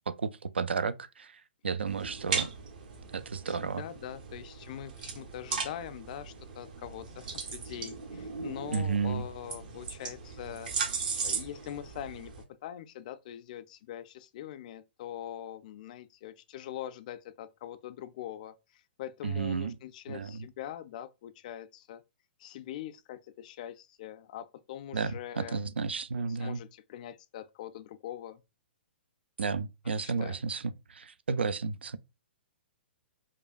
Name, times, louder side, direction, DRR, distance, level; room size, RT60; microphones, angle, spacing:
voice 1, 0.1-1.3 1.6-2.5 3.1-3.8 8.7-9.3 19.2-19.7 20.1-20.4 24.9-26.6 29.4-30.6 30.9-32.0, right 5 dB, 70° right, 0.3 m, -32 dB
sound 1, 1.9-12.4, right 5 dB, 50° right, 0.8 m, -38 dB
voice 2, 3.5-10.7 11.2-12.3 12.6-22.0 22.4-25.6 26.1-28.4 29.8-30.4, left 11 dB, 40° left, 0.4 m, -43 dB
4.9 x 2.2 x 2.4 m
figure-of-eight pair, 115°, 6 cm